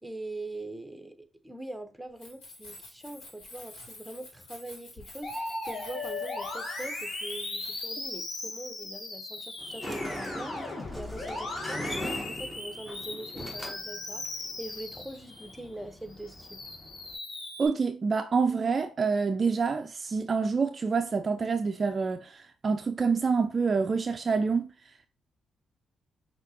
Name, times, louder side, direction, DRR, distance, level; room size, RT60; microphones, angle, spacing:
voice 1, 0.0-10.6 10.9-16.6, right 1 dB, 5° right, 0.8 m, -42 dB
Keys jangling, 2.1-8.2, left 2 dB, 70° left, 1.7 m, -49 dB
Musical instrument, 5.2-15.6 16.1-17.7, left 2 dB, 55° left, 1.3 m, -38 dB
Sliding door, 9.6-17.2, left 1 dB, 15° left, 1.1 m, -41 dB
voice 2, 17.6-24.7, right 5 dB, 45° right, 0.3 m, -27 dB
5.7 x 2.7 x 2.8 m
supercardioid pair, 55°, 0 cm